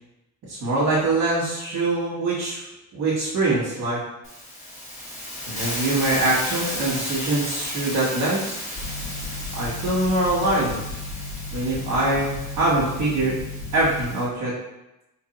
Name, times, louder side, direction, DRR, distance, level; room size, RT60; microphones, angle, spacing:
voice 1, 0.5-2.6 2.9-4.0 5.5-8.6 9.5-10.8 11.5-13.3 13.7-14.5, right 2 dB, 70° right, -9 dB, 1.2 m, -23 dB
Hiss, 4.2-14.2, left 1 dB, 25° left, 1.5 m, -34 dB
sound 1, 8.7-14.0, left 3 dB, 45° left, 1.4 m, -34 dB
2.9 x 2.6 x 4.0 m, 0.92 s
cardioid pair, 90°, 30 cm